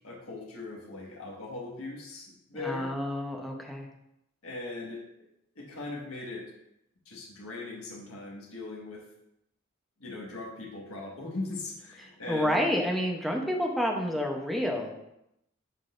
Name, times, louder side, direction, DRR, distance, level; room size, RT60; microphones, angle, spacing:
voice 1, 0.0-2.9 4.4-5.0 5.5-6.4 7.0-9.0 10.0-12.6, left 3 dB, 75° left, -2 dB, 1.6 m, -39 dB
voice 2, 2.5-3.9 12.3-14.9, equal, ahead, 0 dB, 0.8 m, -29 dB
11.5 x 3.9 x 2.6 m, 0.82 s
head